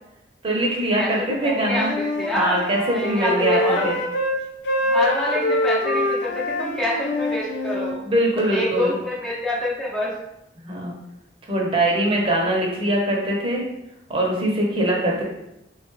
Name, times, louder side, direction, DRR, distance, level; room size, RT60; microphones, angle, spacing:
voice 1, 0.4-1.9 2.3-3.9 8.0-8.9 10.6-10.9 11.5-13.6 14.1-15.2, right 1 dB, 30° right, -2 dB, 0.8 m, -22 dB
voice 2, 1.0-2.6 2.9-3.8 4.9-8.0 8.5-10.1, left 1 dB, 5° left, -7 dB, 0.5 m, -26 dB
Wind instrument woodwind instrument, 1.5-4.4 4.6-8.0, left 1 dB, 70° left, 0.5 m, -25 dB
3.8 x 2.3 x 3.1 m, 0.85 s
head